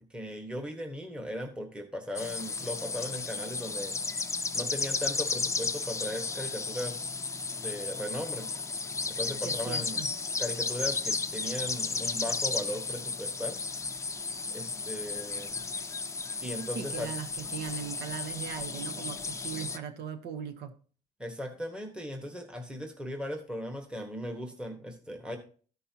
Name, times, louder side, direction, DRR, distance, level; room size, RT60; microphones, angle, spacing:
voice 1, 0.1-4.0 4.5-7.2 7.5-8.5 9.1-10.0 10.4-13.6 14.5-15.7 16.4-17.1 21.2-25.4, equal, 5° right, 1.3 m, -37 dB
sound 1, 2.2-19.8, left 4 dB, 15° left, 0.6 m, -34 dB
voice 2, 9.4-10.1 16.7-20.7, right 8 dB, 75° right, 1.2 m, -39 dB
14.0 x 5.5 x 2.9 m
cardioid pair, 110°, 17 cm